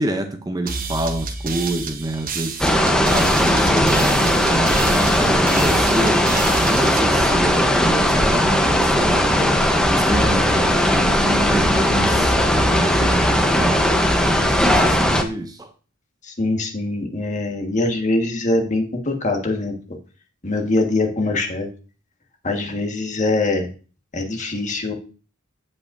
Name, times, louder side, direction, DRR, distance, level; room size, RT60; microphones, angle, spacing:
voice 1, 0.0-2.7 3.0-9.5 9.9-12.3 12.8-13.9 14.5-15.7, right 1 dB, 20° right, 0.6 m, -27 dB
sound 1, 0.7-8.2, right 5 dB, 45° right, 1.1 m, -31 dB
sound 2, 2.6-15.2, equal, 5° left, 0.9 m, -18 dB
voice 2, 16.2-19.7 20.4-21.7 22.4-23.7 24.1-24.9, left 2 dB, 40° left, 1.6 m, -23 dB
15.5 x 5.4 x 2.6 m
head